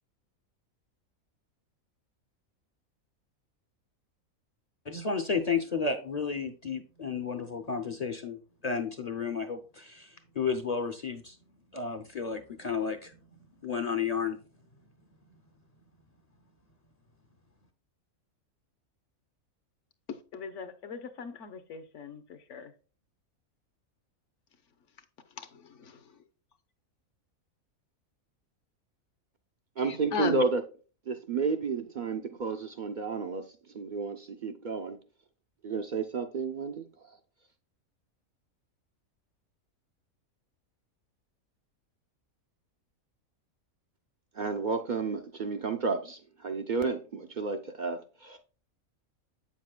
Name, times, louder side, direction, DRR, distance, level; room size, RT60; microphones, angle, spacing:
voice 1, 4.9-8.4 8.6-10.1 10.4-11.3 11.7-13.1 13.6-14.4, left 5 dB, 40° left, 0.6 m, -32 dB
voice 2, 20.3-22.2 22.5-22.7 30.1-30.4, left 5 dB, 60° left, 1.1 m, -36 dB
voice 3, 29.8-30.6 31.1-33.5 33.7-35.0 35.6-36.8 44.3-48.4, right 4 dB, 60° right, 0.5 m, -31 dB
8.3 x 7.2 x 2.2 m
omnidirectional pair, 1.5 m